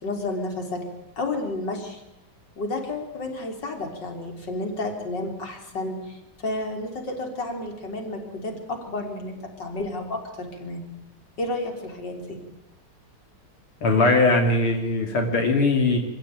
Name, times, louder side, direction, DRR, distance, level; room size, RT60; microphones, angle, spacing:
voice 1, 0.0-0.8 1.2-2.0 2.6-10.9 11.4-12.4, left 2 dB, 55° left, 3 dB, 4.3 m, -31 dB
voice 2, 13.8-16.0, left 2 dB, 80° left, 3 dB, 3.6 m, -20 dB
25.5 x 16.5 x 9.2 m, 0.95 s
omnidirectional pair, 2.3 m